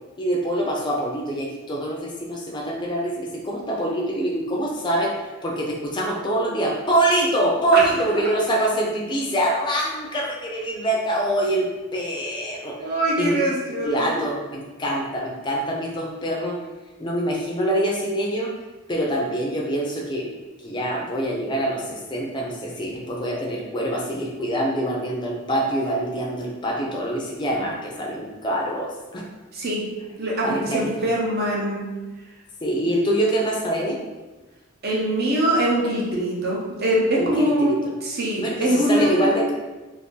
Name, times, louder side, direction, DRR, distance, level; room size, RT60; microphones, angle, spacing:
voice 1, 0.2-12.9 13.2-13.4 13.8-16.6 17.0-18.5 18.9-20.3 20.6-29.2 30.4-30.9 32.6-34.0 37.2-37.9 38.4-39.5, right 1 dB, 20° left, -2 dB, 0.5 m, -25 dB
voice 2, 12.8-14.3 29.5-29.8 30.2-31.9 34.8-37.7 38.0-39.5, right 1 dB, 45° right, -4 dB, 0.7 m, -23 dB
2.7 x 2.6 x 3.6 m, 1.2 s
head